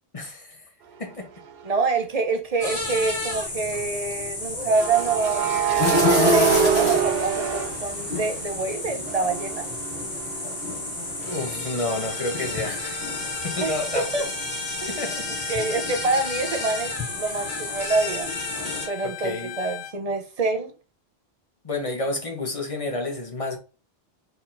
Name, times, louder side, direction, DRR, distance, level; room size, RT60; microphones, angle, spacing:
voice 1, 0.1-0.6 1.0-1.3 11.2-13.1 13.4-14.1 14.9-15.2 19.0-19.6 21.6-23.6, left 2 dB, 35° left, 1.0 m, -30 dB
sound 1, 1.4-1.6 4.7-8.6 9.0-12.6, right 7 dB, 70° right, 0.8 m, -26 dB
voice 2, 1.6-9.7 13.6-14.3 14.8-15.0 15.5-18.3 18.9-20.7, right 3 dB, 40° right, 0.7 m, -26 dB
sound 2, 2.6-18.9, left 2 dB, 55° left, 1.9 m, -29 dB
Bowed string instrument, 11.9-20.0, left 11 dB, 85° left, 0.9 m, -39 dB
4.7 x 3.9 x 2.6 m
omnidirectional pair, 1.0 m